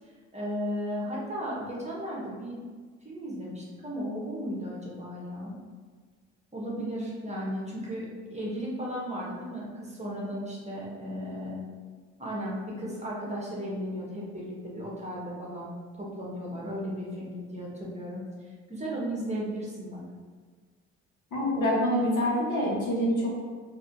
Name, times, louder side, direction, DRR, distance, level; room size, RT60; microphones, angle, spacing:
voice 1, 0.3-2.6 3.0-5.5 6.5-11.6 12.2-15.7 16.0-20.0, equal, 20° right, -5 dB, 1.3 m, -35 dB
voice 2, 21.3-23.3, equal, 65° left, -5 dB, 1.3 m, -26 dB
4.0 x 2.9 x 2.6 m, 1.5 s
hypercardioid pair, 55°, 33 cm